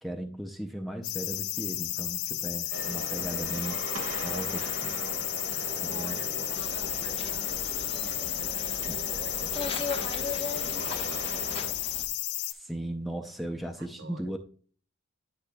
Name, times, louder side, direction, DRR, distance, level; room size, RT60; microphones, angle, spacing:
voice 1, 0.0-3.8 4.2-4.9 5.8-6.2 8.9-9.0 12.4-14.4, right 1 dB, ahead, 4 dB, 0.4 m, -37 dB
sound 1, 1.0-12.5, left 16 dB, 85° left, 0.4 m, -33 dB
sound 2, 2.7-11.7, right 3 dB, 85° right, 1.3 m, -39 dB
voice 2, 3.1-3.7 4.3-5.5 5.8-11.7 13.8-14.3, right 3 dB, 55° right, 7 dB, 0.8 m, -48 dB
sound 3, 6.5-12.1, left 4 dB, 25° left, 0.9 m, -39 dB
10.0 x 5.9 x 2.2 m, 0.43 s
head